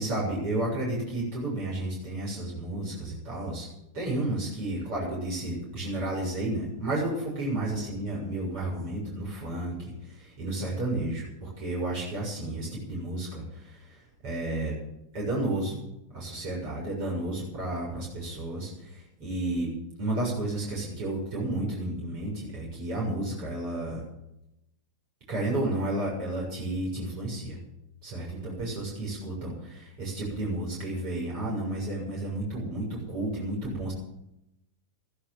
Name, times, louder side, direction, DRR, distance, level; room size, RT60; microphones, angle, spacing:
voice 1, 0.0-3.7 3.9-14.7 15.1-15.8 16.1-19.7 20.0-24.0 25.3-27.6 28.0-33.9, right 1 dB, 45° right, -3 dB, 6.8 m, -32 dB
14.5 x 11.5 x 7.4 m, 0.85 s
figure-of-eight pair, 90°, 0 cm